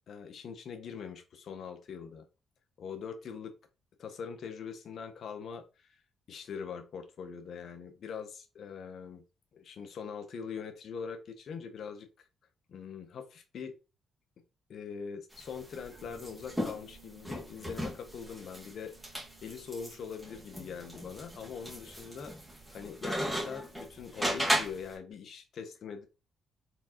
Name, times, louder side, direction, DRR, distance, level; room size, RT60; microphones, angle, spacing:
voice 1, 0.1-2.3 2.8-3.5 4.0-5.9 6.3-9.2 9.5-12.1 12.7-13.7 14.7-18.9 19.4-22.3 22.7-26.1, left 6 dB, 60° left, 8 dB, 0.9 m, -42 dB
sound 1, 15.3-24.9, equal, ahead, 1.9 m, -36 dB
sound 2, 15.9-25.1, right 12 dB, 80° right, 1.5 m, -63 dB
4.4 x 3.6 x 2.9 m, 0.30 s
cardioid pair, 90°, 0 cm